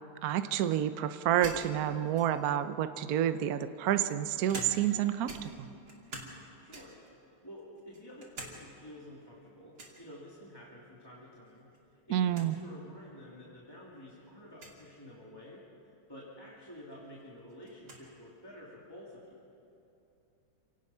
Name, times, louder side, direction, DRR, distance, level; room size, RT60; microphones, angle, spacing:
voice 1, 0.2-5.7 12.1-12.5, right 11 dB, 75° right, 10 dB, 0.8 m, -29 dB
sound 1, 1.4-2.6 3.4-5.0 5.3-6.4 6.7-7.1 7.6-8.6 8.9-9.0 9.8-10.0 11.5-11.8 12.1-12.2 12.3-12.5 13.3-13.4 14.5-14.8 16.5-16.6 16.9-18.1, right 2 dB, 45° right, 3.3 m, -46 dB
voice 2, 6.6-7.0 7.4-11.7 12.0-15.6 16.1-19.4, left 1 dB, 10° left, -6 dB, 2.6 m, -50 dB
28.0 x 18.0 x 5.6 m, 2.8 s
omnidirectional pair, 2.4 m